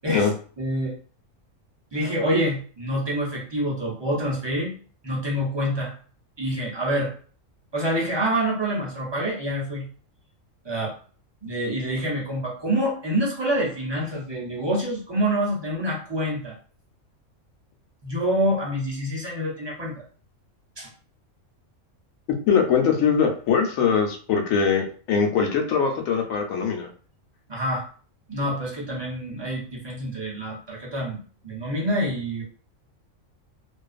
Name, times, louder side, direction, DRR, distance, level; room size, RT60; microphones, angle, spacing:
voice 1, 0.6-0.9 1.9-4.7 5.0-5.9 6.4-7.1 7.7-9.9 10.6-10.9 11.4-16.6 18.0-20.0 20.8-20.9 27.5-27.9 28.3-32.4, equal, 30° right, -4 dB, 0.5 m, -26 dB
voice 2, 22.3-26.9, left 6 dB, 85° left, 3 dB, 1.0 m, -22 dB
2.5 x 2.3 x 2.3 m, 0.42 s
omnidirectional pair, 1.3 m